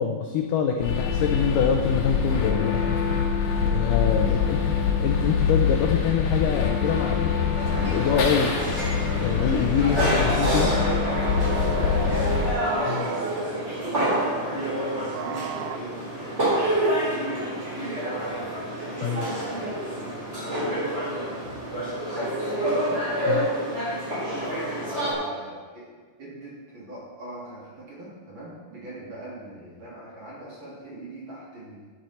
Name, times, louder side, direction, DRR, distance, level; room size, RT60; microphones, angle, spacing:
voice 1, 0.0-3.4 3.6-4.6 5.0-7.5 7.8-8.8 9.2-10.8 12.9-13.1 19.0-19.3 23.3-23.5, left 7 dB, 85° left, 3 dB, 1.9 m, -25 dB
sound 1, 0.8-12.5, left 6 dB, 55° left, 2.3 m, -25 dB
voice 2, 4.2-4.5 11.5-18.6 19.3-23.0 24.8-25.9 26.2-31.8, right 1 dB, 35° right, -6 dB, 2.9 m, -42 dB
sound 2, 7.5-25.1, right 1 dB, 15° right, 3.7 m, -28 dB
sound 3, 7.5-15.8, right 10 dB, 80° right, 2.3 m, -37 dB
12.5 x 9.2 x 4.3 m, 1.5 s
omnidirectional pair, 4.6 m